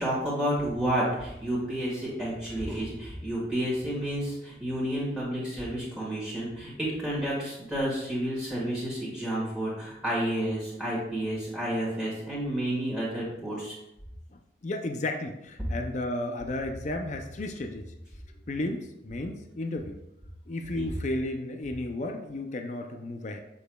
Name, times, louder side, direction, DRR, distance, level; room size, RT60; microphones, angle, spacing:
voice 1, 0.0-13.8 20.7-20.8, right 1 dB, 5° right, -8 dB, 1.7 m, -30 dB
voice 2, 14.3-17.9 18.5-20.0 20.5-23.4, left 2 dB, 40° left, 5 dB, 0.5 m, -33 dB
7.0 x 6.6 x 2.3 m, 0.85 s
head